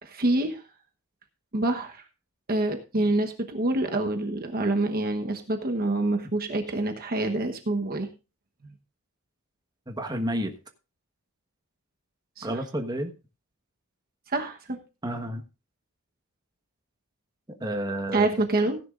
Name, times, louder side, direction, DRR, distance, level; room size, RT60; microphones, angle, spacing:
voice 1, 0.0-0.6 1.5-2.0 2.5-8.1 12.4-12.6 14.3-14.8 18.1-18.8, right 2 dB, 40° right, 5 dB, 1.1 m, -26 dB
voice 2, 9.9-10.5 12.4-13.1 15.0-15.4 17.5-18.3, right 1 dB, 20° right, 4 dB, 1.3 m, -30 dB
16.0 x 10.5 x 2.5 m, 0.31 s
head